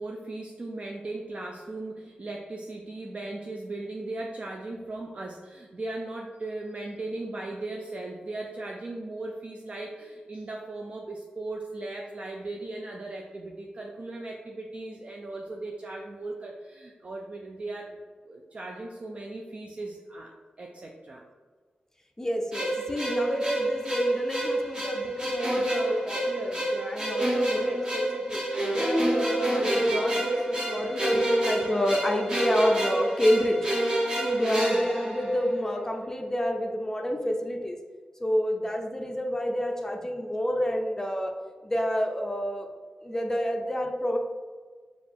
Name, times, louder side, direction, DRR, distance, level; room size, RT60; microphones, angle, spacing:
voice 1, 0.0-18.0 18.2-21.3, right 2 dB, 45° right, 0 dB, 0.4 m, -38 dB
voice 2, 22.2-28.4 28.7-33.6 34.2-37.8 38.2-41.3 41.6-42.7 43.0-44.2, equal, 15° left, 3 dB, 0.5 m, -29 dB
sound 1, 22.5-35.8, right 1 dB, 25° right, 0.9 m, -28 dB
4.8 x 2.5 x 3.4 m, 1.5 s
wide cardioid pair, 95°, 3 cm